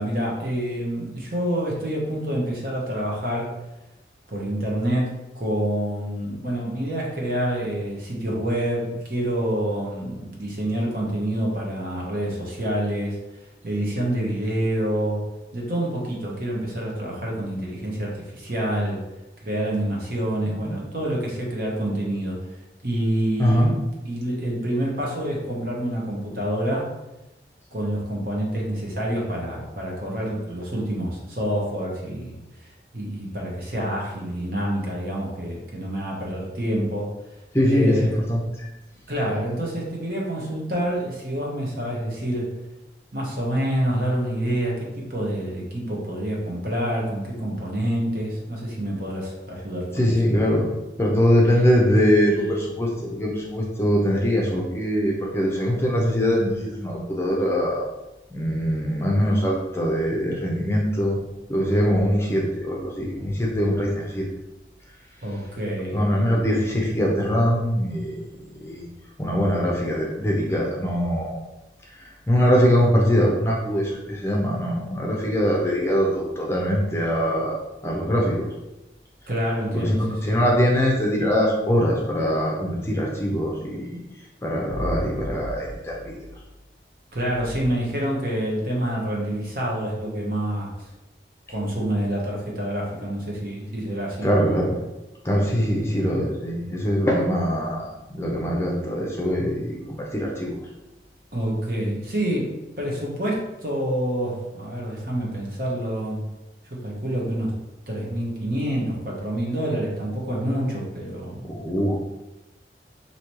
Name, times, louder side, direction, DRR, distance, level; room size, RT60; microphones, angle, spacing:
voice 1, 0.0-3.5 4.3-13.2 13.6-15.2 15.5-19.0 19.4-22.4 22.8-23.7 24.0-26.9 27.7-32.3 32.6-37.0 37.6-38.1 39.1-42.5 43.1-50.1 65.2-66.0 79.3-80.3 87.1-90.7 91.5-94.3 101.3-106.2 106.8-107.5 107.9-111.5, right 1 dB, 55° right, -3 dB, 1.1 m, -27 dB
voice 2, 23.4-23.7 37.5-38.7 49.9-50.7 51.0-57.9 58.3-61.2 61.5-64.3 65.9-68.3 68.6-68.9 69.2-71.3 72.3-77.5 77.8-78.5 79.7-84.0 84.4-86.2 94.2-94.8 95.2-100.5 111.5-112.0, equal, 15° left, -2 dB, 0.6 m, -22 dB
4.9 x 2.8 x 3.0 m, 1.0 s
head